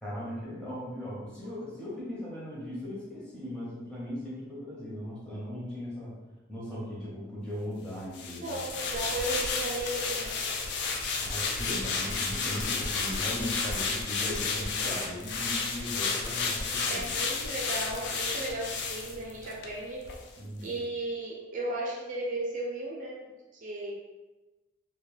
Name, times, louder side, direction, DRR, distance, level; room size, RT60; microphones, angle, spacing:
voice 1, 0.0-6.1 6.5-8.6 8.9-9.0 11.2-17.1 20.4-20.8, left 1 dB, 5° left, -7 dB, 0.7 m, -38 dB
sound 1, 8.1-19.7 20.1-20.2, left 4 dB, 65° left, 0.3 m, -32 dB
voice 2, 8.4-10.4 14.4-14.6 16.9-20.1 20.6-23.2 23.5-23.9, right 1 dB, 45° right, -3 dB, 0.4 m, -35 dB
2.2 x 2.1 x 3.1 m, 1.1 s
head